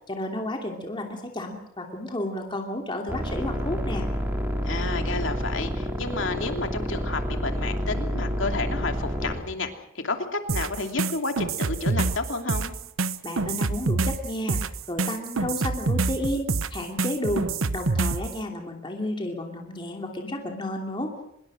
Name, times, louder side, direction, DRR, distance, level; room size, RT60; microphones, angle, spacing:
voice 1, 0.1-4.1 13.2-14.6 14.9-21.1, left 1 dB, 25° left, 2 dB, 2.7 m, -32 dB
sound 1, 3.1-9.4, equal, 10° right, 3.5 m, -29 dB
voice 2, 4.7-9.7 10.0-12.7, left 3 dB, 65° left, 5 dB, 2.9 m, -31 dB
sound 2, 10.5-18.3, right 3 dB, 80° right, 1.0 m, -26 dB
25.0 x 21.5 x 6.3 m, 0.77 s
head